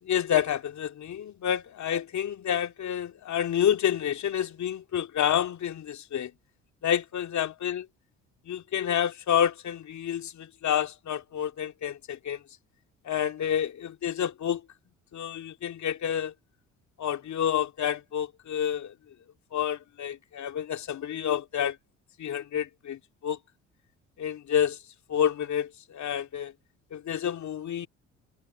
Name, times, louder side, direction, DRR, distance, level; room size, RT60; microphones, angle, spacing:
voice 1, 0.0-6.3 6.8-7.8 8.5-12.4 13.0-14.6 15.1-16.3 17.0-18.9 19.5-21.8 22.2-23.4 24.2-24.8 25.1-26.5 26.9-27.9, left 9 dB, 50° left, 2.6 m, -29 dB
hypercardioid pair, 55°, 37 cm